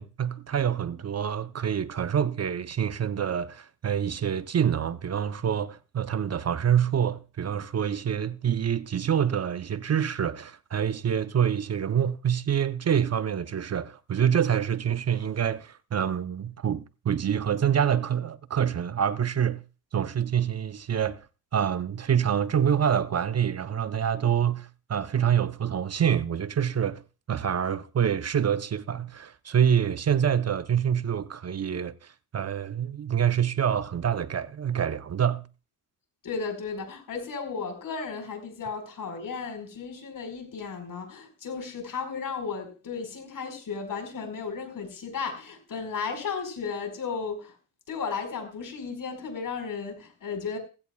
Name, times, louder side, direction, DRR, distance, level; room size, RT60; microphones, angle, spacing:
voice 1, 0.0-19.6 19.9-21.3 21.5-27.0 27.3-35.5, right 8 dB, 45° right, 0.7 m, -26 dB
voice 2, 36.2-47.5 47.9-50.6, left 5 dB, 65° left, 4.9 m, -34 dB
17.0 x 15.5 x 2.3 m
cardioid pair, 70°, 35 cm